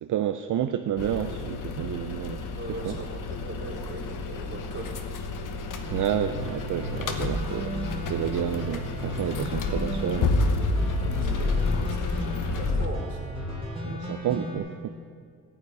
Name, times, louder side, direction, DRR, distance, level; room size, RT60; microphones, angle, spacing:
voice 1, 0.0-3.0 5.9-10.3 13.9-14.9, right 10 dB, 70° right, 8 dB, 0.6 m, -30 dB
sound 1, 1.0-12.9, left 3 dB, 70° left, 1.2 m, -30 dB
voice 2, 2.6-5.5 11.0-13.4, right 2 dB, 35° right, -2 dB, 4.1 m, -40 dB
sound 2, 5.8-14.6, equal, 15° right, 3.5 m, -35 dB
14.5 x 5.8 x 9.6 m, 2.2 s
cardioid pair, 95°, 32 cm